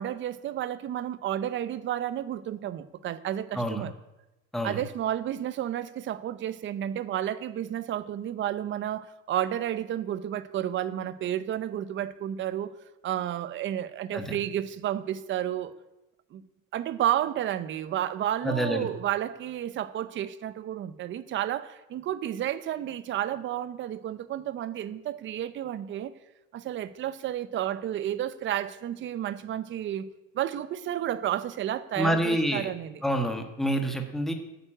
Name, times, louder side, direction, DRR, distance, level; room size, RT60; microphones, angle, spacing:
voice 1, 0.0-3.9 4.6-12.7 13.0-15.7 16.3-16.4 16.7-26.1 26.5-30.1 30.3-33.0, right 11 dB, 30° right, 0.7 m, -31 dB
voice 2, 18.4-18.9 32.0-32.7 33.0-34.3, equal, ahead, 1.3 m, -27 dB
14.0 x 9.3 x 8.9 m
cardioid pair, 160°, 39 cm